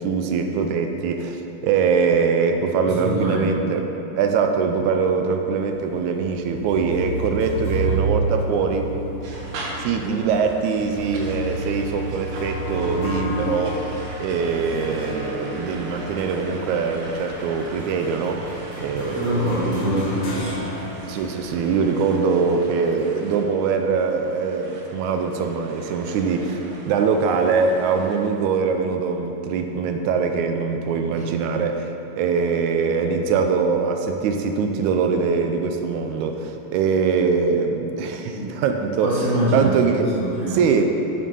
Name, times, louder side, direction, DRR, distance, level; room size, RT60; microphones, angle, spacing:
voice 1, 0.0-3.8 4.2-8.9 9.8-13.9 14.2-19.5 21.0-39.2 39.5-40.1 40.5-40.9, right 5 dB, 80° right, 5 dB, 1.9 m, -22 dB
voice 2, 2.8-3.5 19.1-20.5 31.1-31.2 38.3-38.6 39.0-40.6, equal, 55° left, -8 dB, 0.7 m, -24 dB
sound 1, 5.6-21.4, right 1 dB, 85° left, 3.3 m, -31 dB
sound 2, 9.2-28.4, right 2 dB, 60° right, 1.6 m, -41 dB
8.5 x 7.1 x 5.4 m, 3.0 s
omnidirectional pair, 3.6 m